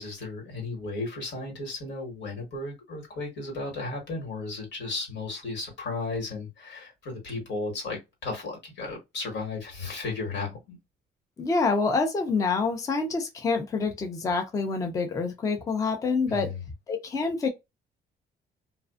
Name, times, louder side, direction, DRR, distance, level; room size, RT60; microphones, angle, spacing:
voice 1, 0.0-10.8 16.3-16.6, left 3 dB, 80° left, 1.4 m, -34 dB
voice 2, 11.4-16.5 16.9-17.5, left 4 dB, 20° left, 0.4 m, -27 dB
2.4 x 2.3 x 2.3 m
cardioid pair, 170°, 18 cm